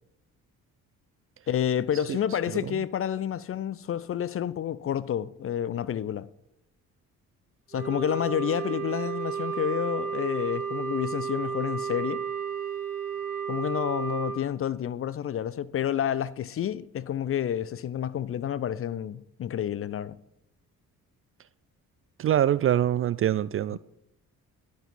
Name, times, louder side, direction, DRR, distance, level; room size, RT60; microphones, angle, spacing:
voice 1, 1.5-6.3 7.7-12.2 13.5-20.2 23.7-23.8, left 10 dB, 30° left, 0.5 m, -29 dB
Wind instrument woodwind instrument, 7.7-14.4, right 7 dB, 85° right, 1.2 m, -32 dB
voice 2, 22.2-23.8, right 11 dB, 30° right, 0.4 m, -24 dB
10.5 x 9.4 x 4.1 m
figure-of-eight pair, 40°, 44 cm